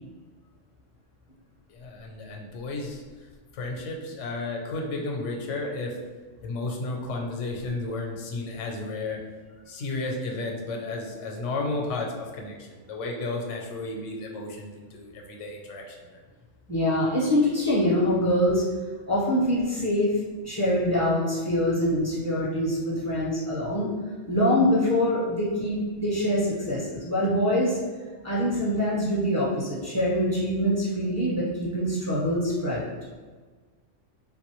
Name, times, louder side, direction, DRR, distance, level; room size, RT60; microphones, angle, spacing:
voice 1, 1.7-3.3 3.5-6.0 6.4-9.2 9.7-16.2, left 2 dB, 85° left, 1 dB, 0.9 m, -33 dB
voice 2, 16.7-18.6 19.1-20.2 20.4-23.9 24.3-27.8 28.2-32.9, equal, 15° right, -10 dB, 1.0 m, -24 dB
3.3 x 2.5 x 3.0 m, 1.4 s
omnidirectional pair, 1.2 m